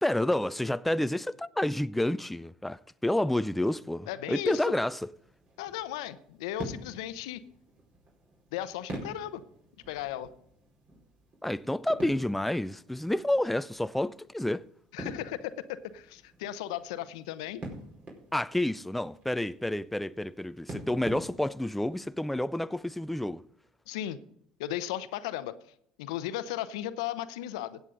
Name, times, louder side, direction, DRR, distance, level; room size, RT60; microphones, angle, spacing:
voice 1, 0.0-5.1 11.4-14.7 18.3-23.4, left 1 dB, 5° left, 0.4 m, -29 dB
voice 2, 4.1-4.7 5.6-7.4 8.5-9.4 9.9-10.3 14.9-15.5 15.9-17.6 23.9-24.2 24.6-25.5 26.0-27.8, left 12 dB, 80° left, 0.7 m, -35 dB
sound 1, 4.9-22.1, right 1 dB, 45° right, 4.8 m, -47 dB
16.0 x 8.2 x 3.8 m
hypercardioid pair, 75°, 3 cm